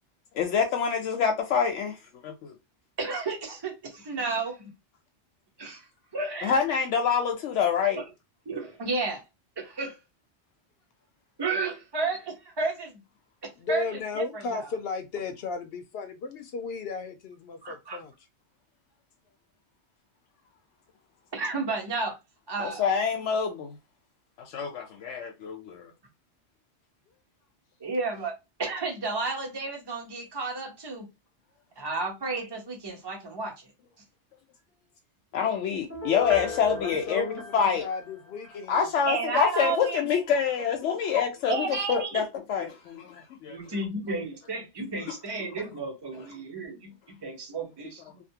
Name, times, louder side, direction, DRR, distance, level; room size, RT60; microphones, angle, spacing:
voice 1, 0.3-2.0 2.2-2.5 6.4-8.0 22.6-23.8 24.4-25.9 35.3-37.9 38.7-43.8, left 7 dB, 90° left, 0.9 m, -26 dB
voice 2, 3.0-4.7 5.6-5.8 6.1-6.5 7.9-8.0 8.5-9.2 9.8-9.9 11.4-13.0 13.7-13.8 14.1-14.6 17.6-18.0 21.3-22.1 22.5-22.8 27.8-28.3 28.6-31.1 31.8-33.5 39.1-40.0 41.5-42.2 43.5-46.9 47.2-48.0, right 3 dB, 25° right, 0.8 m, -32 dB
voice 3, 13.6-18.1 36.7-38.9, left 4 dB, 65° left, 0.8 m, -35 dB
Piano, 35.9-38.6 39.0-39.1, left 3 dB, 15° left, 0.9 m, -36 dB
2.6 x 2.5 x 2.7 m
omnidirectional pair, 1.2 m